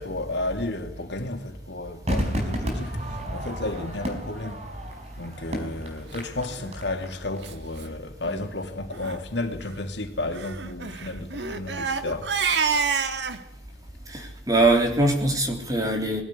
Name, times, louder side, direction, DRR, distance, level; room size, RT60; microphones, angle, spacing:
voice 1, 0.0-12.3, left 2 dB, 75° left, 2.8 m, -33 dB
Crowd / Fireworks, 2.1-7.5 7.7-7.8, equal, 35° right, 4.9 m, -32 dB
Crying sobbing, 6.5-6.8 7.4-7.5 7.8-7.9 8.2-8.5 8.9-9.2 10.3-13.4, right 5 dB, 75° right, 1.7 m, -28 dB
voice 2, 14.1-16.2, right 2 dB, 20° right, 3.5 m, -22 dB
21.5 x 16.5 x 9.8 m
head